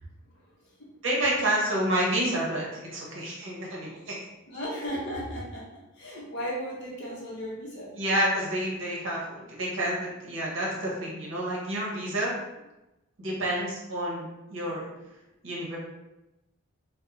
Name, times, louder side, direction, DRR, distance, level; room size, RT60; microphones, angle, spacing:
voice 1, 0.2-0.9 4.5-7.9, equal, 55° left, -5 dB, 0.6 m, -36 dB
voice 2, 1.0-4.2 8.0-12.3 13.2-14.9 15.4-15.8, right 1 dB, 60° right, -4 dB, 0.8 m, -29 dB
2.9 x 2.0 x 2.5 m, 0.97 s
head